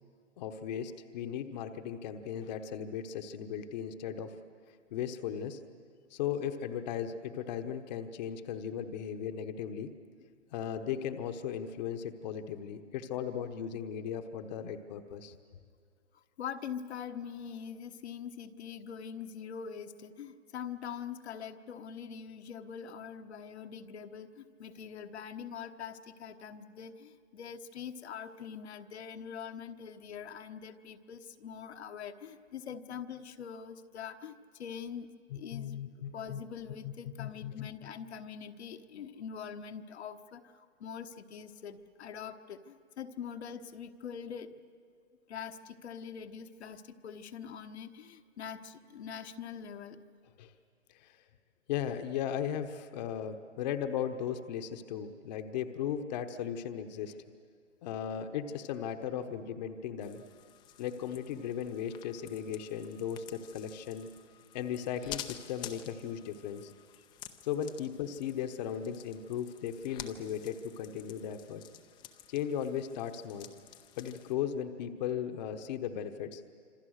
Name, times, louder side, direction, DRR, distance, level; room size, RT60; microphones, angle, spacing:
voice 1, 0.4-4.3 4.9-5.6 6.1-9.9 10.5-15.3 35.3-36.4 36.8-36.9 37.2-37.7 50.4-50.5 50.9-51.2 51.7-57.2 57.8-60.2 60.8-64.1 64.5-66.7 67.4-71.6 72.3-73.5 74.0-76.4, left 9 dB, 35° left, 7 dB, 1.1 m, -37 dB
voice 2, 16.1-35.1 35.3-35.8 36.1-44.5 45.3-50.0 67.0-67.1, left 7 dB, 60° left, 6 dB, 1.3 m, -43 dB
sound 1, 60.0-74.3, left 11 dB, 10° left, 0.6 m, -50 dB
26.5 x 26.0 x 6.5 m, 2.2 s
hypercardioid pair, 145°, 37 cm